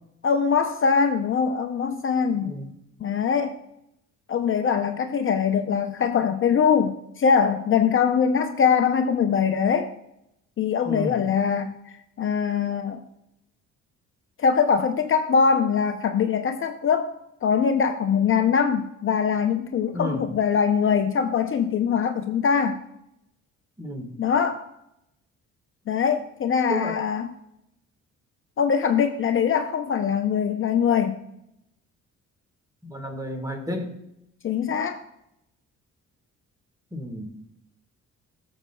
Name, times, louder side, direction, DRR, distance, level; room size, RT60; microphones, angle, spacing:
voice 1, 0.2-2.6 3.0-3.6 4.3-9.9 10.6-11.7 12.2-13.0 14.4-17.1 17.4-22.8 24.2-24.6 25.9-27.3 28.6-31.2 34.4-35.0, left 6 dB, 45° left, 6 dB, 0.6 m, -22 dB
voice 2, 2.4-2.7 10.8-11.2 19.9-20.3 23.8-24.1 26.7-27.0 32.8-33.9 36.9-37.4, left 1 dB, 10° right, 4 dB, 1.6 m, -32 dB
14.0 x 7.2 x 2.3 m, 0.81 s
cardioid pair, 90°, 30 cm